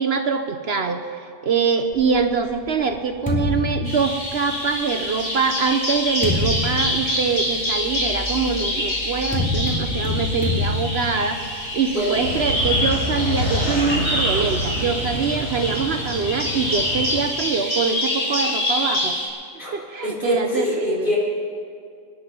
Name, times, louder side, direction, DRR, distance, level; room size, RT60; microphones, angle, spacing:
voice 1, 0.0-19.2 19.7-21.1, right 5 dB, 55° right, 7 dB, 0.9 m, -24 dB
sound 1, 1.9-4.7 5.5-12.5, left 2 dB, 5° left, 2.8 m, -28 dB
Bird vocalization bird call bird song, 3.8-19.3, left 1 dB, 60° left, 4.8 m, -26 dB
sound 2, 12.1-17.2, equal, 85° left, 3.8 m, -27 dB
voice 2, 20.0-21.2, left 1 dB, 40° left, -6 dB, 4.5 m, -24 dB
25.5 x 10.5 x 5.3 m, 2.3 s
omnidirectional pair, 1.3 m